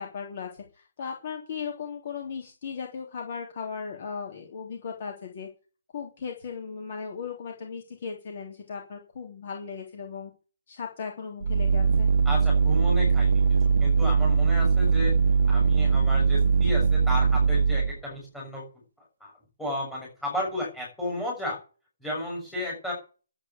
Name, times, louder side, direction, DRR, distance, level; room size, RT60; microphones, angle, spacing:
voice 1, 0.0-5.5 5.9-10.3 10.7-12.1, left 6 dB, 30° left, 2 dB, 3.3 m, -37 dB
sound 1, 11.4-18.0, right 5 dB, 85° right, 0.9 m, -21 dB
voice 2, 12.3-13.4 13.8-15.1 15.5-18.6 19.2-19.3 19.6-21.6 22.0-22.9, left 1 dB, 5° left, -5 dB, 7.0 m, -33 dB
11.5 x 8.9 x 9.7 m, 0.36 s
hypercardioid pair, 180°, 0 cm